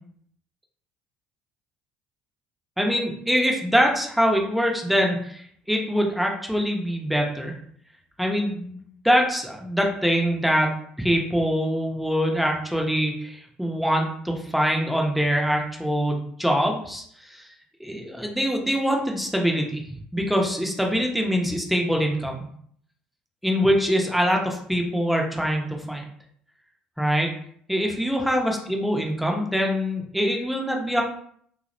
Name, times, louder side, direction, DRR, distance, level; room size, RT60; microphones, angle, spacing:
voice 1, 2.8-5.4 5.7-7.5 8.2-8.8 9.0-17.4 17.8-22.3 23.4-26.0 27.0-27.3 27.7-31.0, equal, ahead, 1 dB, 0.6 m, -24 dB
2.6 x 2.0 x 2.6 m, 0.63 s
hypercardioid pair, 60°, 4 cm